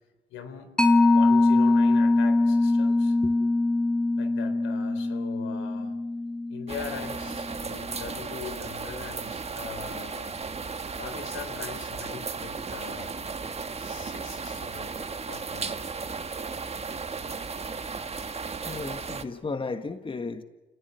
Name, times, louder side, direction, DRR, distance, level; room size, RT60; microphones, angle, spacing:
voice 1, 0.3-0.7 1.0-3.2 4.1-6.0 6.5-10.4 10.9-13.2 13.8-14.9 15.3-15.7, left 7 dB, 85° left, 4.1 m, -41 dB
Mallet percussion, 0.8-7.8, left 2 dB, 5° left, 1.8 m, -23 dB
sound 1, 6.7-19.2, right 4 dB, 30° right, 1.7 m, -35 dB
voice 2, 18.6-20.4, left 4 dB, 25° left, 1.5 m, -34 dB
29.0 x 19.0 x 9.7 m
cardioid pair, 90°, 20 cm